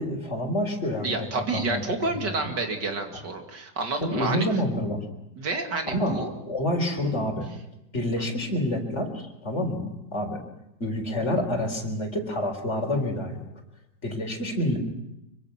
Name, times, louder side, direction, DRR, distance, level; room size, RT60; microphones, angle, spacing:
voice 1, 0.0-1.8 2.2-2.5 4.0-5.0 5.9-6.2 6.5-7.5 7.9-9.8 10.1-10.4 10.8-13.4 14.0-14.8, left 1 dB, 35° left, 2 dB, 4.4 m, -28 dB
voice 2, 1.0-4.4 5.4-6.3, right 3 dB, 65° right, 4 dB, 3.0 m, -29 dB
25.5 x 24.5 x 6.0 m, 0.87 s
omnidirectional pair, 2.0 m